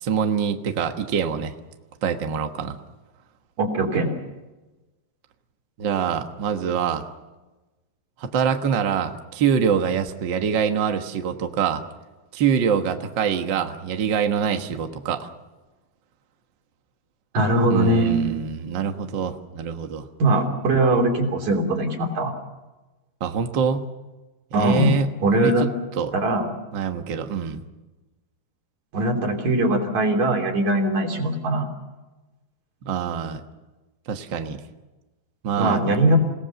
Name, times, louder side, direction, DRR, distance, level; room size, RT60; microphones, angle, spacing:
voice 1, 0.0-1.5 2.0-2.8 5.8-7.0 8.2-11.8 12.3-15.3 17.7-20.1 23.2-23.9 24.5-26.1 26.7-27.6 32.8-33.4 34.1-34.6 35.4-35.8, right 7 dB, 75° right, 6 dB, 1.0 m, -25 dB
voice 2, 3.6-4.1 17.3-18.3 20.2-22.3 24.5-25.7 26.1-26.5 28.9-31.7 35.6-36.2, right 1 dB, 55° right, 2 dB, 4.3 m, -21 dB
28.5 x 18.0 x 6.9 m, 1.1 s
omnidirectional pair, 4.2 m